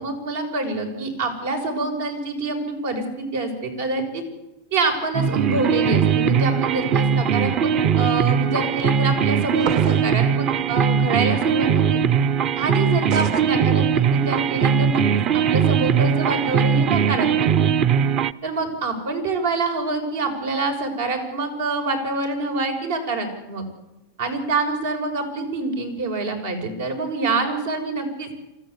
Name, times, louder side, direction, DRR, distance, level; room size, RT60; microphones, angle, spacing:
voice 1, 0.0-4.2 4.7-7.7 8.0-12.0 12.6-13.8 14.1-15.0 15.3-17.5 18.4-23.6 24.2-28.3, right 3 dB, 80° right, 5 dB, 6.0 m, -26 dB
sound 1, 5.1-18.3, right 7 dB, 35° right, 0.6 m, -20 dB
sound 2, 9.6-10.1 13.1-13.5, right 8 dB, 50° right, 1.3 m, -29 dB
25.0 x 14.5 x 8.2 m, 0.97 s
supercardioid pair, 140°, 0 cm